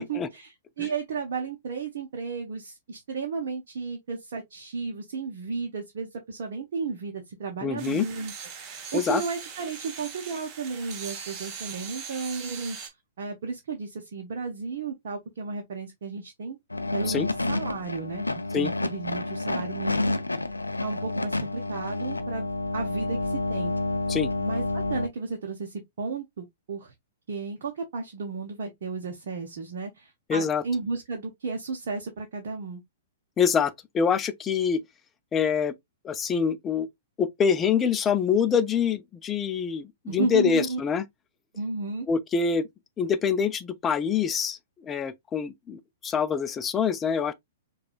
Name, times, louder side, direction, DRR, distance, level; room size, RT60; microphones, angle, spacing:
voice 1, 0.0-8.3 8.8-12.8 13.2-16.6 16.9-18.3 18.6-20.1 20.8-22.5 22.7-23.7 24.4-26.9 27.3-32.8 40.1-40.8 41.5-42.1, right 4 dB, 55° right, 0.8 m, -33 dB
voice 2, 7.6-8.1 8.9-9.2 17.1-17.3 18.5-18.7 24.1-24.3 30.3-30.6 33.4-34.8 35.3-35.8 36.0-36.9 37.2-41.0 42.1-42.6 43.0-44.6 44.8-47.3, left 6 dB, 20° left, 0.4 m, -25 dB
sound 1, 7.8-12.9, right 6 dB, 30° right, 1.0 m, -40 dB
sound 2, 16.7-25.1, left 2 dB, 90° left, 0.4 m, -29 dB
4.8 x 2.3 x 2.3 m
figure-of-eight pair, 110°, 0 cm